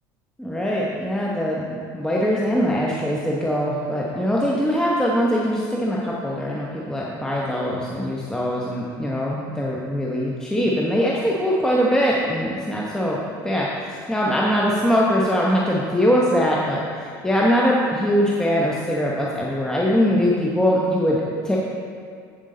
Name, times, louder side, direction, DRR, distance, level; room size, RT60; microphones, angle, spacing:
voice 1, 0.4-21.6, equal, 5° left, -4 dB, 0.9 m, -22 dB
8.3 x 7.8 x 3.8 m, 2.2 s
supercardioid pair, 105°, 10 cm